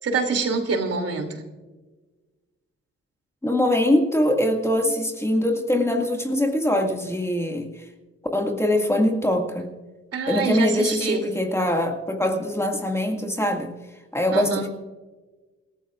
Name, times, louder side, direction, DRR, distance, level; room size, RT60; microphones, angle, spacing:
voice 1, 0.0-1.4 10.1-11.2 14.3-14.7, right 4 dB, 55° right, 5 dB, 2.8 m, -25 dB
voice 2, 3.4-7.8 8.3-9.7 10.3-13.7 14.1-14.7, left 1 dB, 10° left, 2 dB, 2.0 m, -23 dB
26.5 x 14.5 x 2.5 m, 1.3 s
cardioid pair, 90°, 30 cm